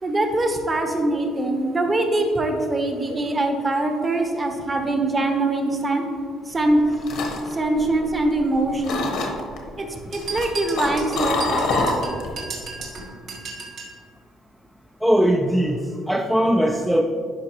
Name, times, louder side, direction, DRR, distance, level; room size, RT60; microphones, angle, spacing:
voice 1, 0.0-6.0 6.5-6.9 7.5-9.1 9.8-12.1, right 2 dB, 25° right, 4 dB, 0.9 m, -23 dB
sound 1, 6.6-8.5 8.8-9.6 10.1-12.4 12.7-13.0, left 3 dB, 70° left, 1.1 m, -26 dB
sound 2, 10.1-14.0, right 4 dB, 65° right, 1.6 m, -35 dB
voice 2, 15.0-17.0, equal, ahead, 3 dB, 0.3 m, -20 dB
11.0 x 4.7 x 2.9 m, 2.1 s
cardioid pair, 120°, 0 cm